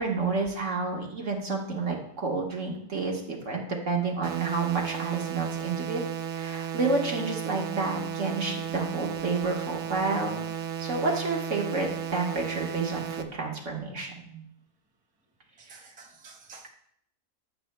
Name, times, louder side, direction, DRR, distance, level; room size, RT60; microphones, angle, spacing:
voice 1, 0.0-6.0 6.3-10.4 10.8-14.4 15.7-15.8, right 3 dB, 55° right, 0 dB, 1.7 m, -30 dB
sound 1, 4.2-13.2, right 8 dB, 80° right, 0.5 m, -34 dB
voice 2, 15.6-16.7, right 4 dB, 5° right, -1 dB, 0.7 m, -50 dB
13.0 x 7.9 x 2.2 m, 0.69 s
omnidirectional pair, 1.6 m